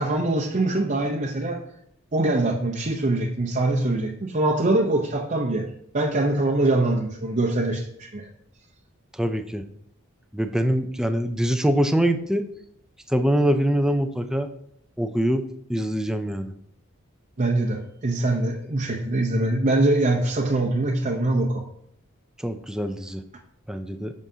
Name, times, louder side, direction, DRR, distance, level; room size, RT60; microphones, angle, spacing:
voice 1, 0.0-1.6 2.1-5.6 5.9-8.3 17.4-21.6, right 2 dB, 35° right, -2 dB, 0.7 m, -23 dB
voice 2, 9.2-9.6 10.3-12.4 13.1-14.5 15.0-15.4 15.7-16.5 22.4-23.2 23.7-24.1, equal, 5° right, 7 dB, 0.4 m, -23 dB
8.9 x 6.3 x 2.8 m, 0.70 s
head